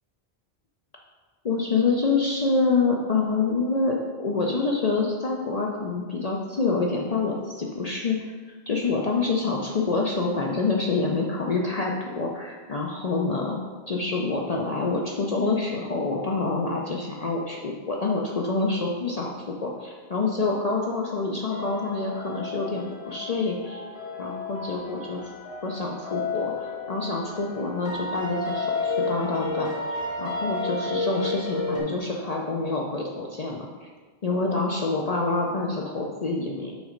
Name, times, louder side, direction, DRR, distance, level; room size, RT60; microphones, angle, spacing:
voice 1, 1.4-8.2 8.7-13.6 13.9-19.3 19.6-23.8 24.2-25.3 25.6-33.9 34.2-36.7, left 3 dB, 45° left, -2 dB, 0.6 m, -27 dB
sound 1, 21.5-31.8, left 3 dB, 70° left, 1.5 m, -32 dB
6.3 x 4.2 x 5.0 m, 1.4 s
omnidirectional pair, 1.1 m